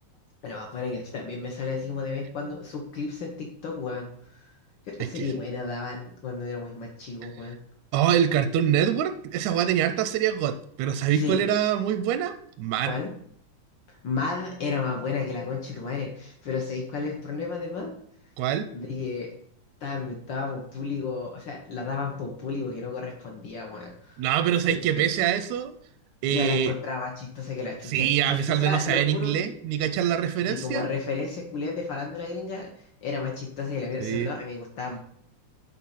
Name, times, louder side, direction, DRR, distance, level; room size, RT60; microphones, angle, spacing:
voice 1, 0.4-4.5 4.9-7.6 11.1-11.4 12.9-13.1 13.9-18.0 18.7-19.3 19.8-24.3 24.7-25.0 26.2-29.3 30.5-35.0, left 4 dB, 75° left, 1 dB, 1.0 m, -32 dB
voice 2, 7.9-12.9 18.4-18.7 24.2-25.7 26.2-26.7 27.9-30.9 34.0-34.3, right 10 dB, 80° right, 10 dB, 1.7 m, -24 dB
9.4 x 4.0 x 5.6 m, 0.64 s
omnidirectional pair, 3.6 m